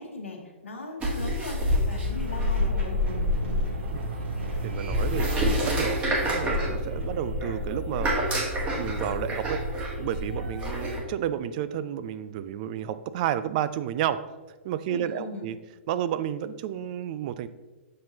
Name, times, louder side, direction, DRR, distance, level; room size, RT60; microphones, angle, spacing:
voice 1, 0.0-3.0 14.9-15.5, left 3 dB, 75° left, 2 dB, 1.3 m, -39 dB
sound 1, 1.0-11.0, left 1 dB, 20° right, 1.4 m, -28 dB
sound 2, 1.9-11.0, right 3 dB, 60° right, 1.3 m, -39 dB
voice 2, 4.6-8.2 8.7-14.2 14.6-15.6 15.9-17.5, right 10 dB, 40° right, 13 dB, 0.3 m, -31 dB
7.3 x 5.9 x 2.8 m, 1.3 s
figure-of-eight pair, 115°, 7 cm